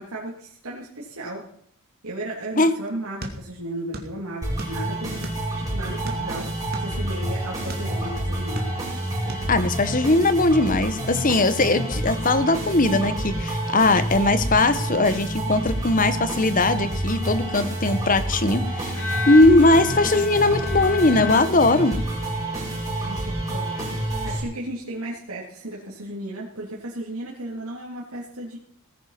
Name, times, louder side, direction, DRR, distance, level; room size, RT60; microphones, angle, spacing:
voice 1, 0.0-1.4 2.0-5.3 5.6-6.5 6.8-8.7 22.7-23.7 24.0-28.6, right 1 dB, 85° right, -4 dB, 3.6 m, -35 dB
sound 1, 3.2-4.2 4.4-5.6 6.0-7.9 8.4-9.0 9.3-9.5, right 1 dB, 45° right, 2.5 m, -36 dB
sound 2, 4.4-24.4, right 1 dB, 15° right, 6.1 m, -28 dB
voice 2, 9.5-19.0 19.3-22.0, left 2 dB, 40° left, 12 dB, 1.2 m, -19 dB
Bowed string instrument, 18.9-22.3, left 4 dB, 65° left, 2.9 m, -32 dB
19.0 x 10.0 x 6.0 m, 0.64 s
head